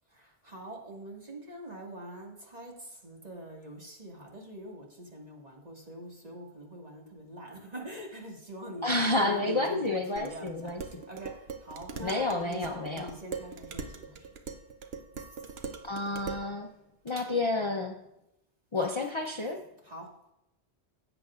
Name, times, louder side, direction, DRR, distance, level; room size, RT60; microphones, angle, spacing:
voice 1, 0.1-14.3 17.2-17.3 19.8-20.1, equal, 40° right, -1 dB, 2.0 m, -44 dB
voice 2, 8.8-10.8 12.0-13.1 15.8-16.7 17.0-17.9 18.7-19.6, left 2 dB, 30° left, 2 dB, 0.7 m, -30 dB
Dishes pots and pans, 10.2-16.5, right 5 dB, 70° right, 1.0 m, -42 dB
16.0 x 7.9 x 2.4 m, 0.85 s
omnidirectional pair, 1.1 m